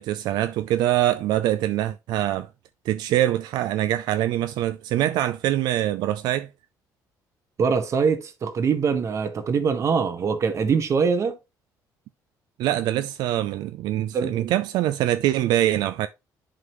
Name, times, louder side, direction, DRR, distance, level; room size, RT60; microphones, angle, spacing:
voice 1, 0.0-2.5 2.9-6.5 12.6-16.1, right 13 dB, 80° right, 0.4 m, -24 dB
voice 2, 7.6-11.4 13.9-14.5, right 5 dB, 45° right, 1.2 m, -23 dB
11.0 x 3.8 x 3.0 m
cardioid pair, 115°, 7 cm